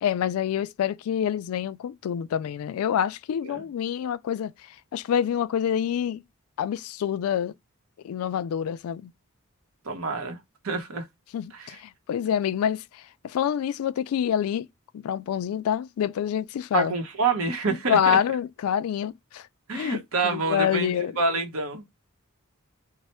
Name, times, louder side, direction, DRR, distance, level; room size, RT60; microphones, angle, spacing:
voice 1, 0.0-4.5 4.9-6.2 6.6-7.5 8.0-9.1 11.3-14.7 14.9-17.0 17.9-19.5 19.7-21.1, left 9 dB, 90° left, 0.3 m, -27 dB
voice 2, 9.8-10.4 10.6-11.0 11.5-11.8 16.7-18.2 19.7-21.8, right 4 dB, 80° right, 0.9 m, -27 dB
3.2 x 2.0 x 4.2 m
head